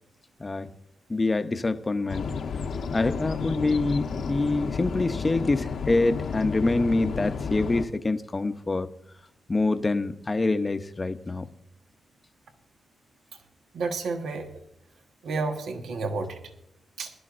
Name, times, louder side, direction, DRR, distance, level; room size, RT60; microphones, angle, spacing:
voice 1, 1.1-2.3 2.9-8.9 9.5-11.5, left 2 dB, 25° left, 9 dB, 0.8 m, -26 dB
sound 1, 2.1-7.8, left 5 dB, 70° left, 1.0 m, -32 dB
voice 2, 13.7-14.5 15.2-16.4 17.0-17.1, right 3 dB, 80° right, 4 dB, 1.4 m, -30 dB
21.0 x 12.0 x 2.5 m, 0.79 s
cardioid pair, 95°, 0 cm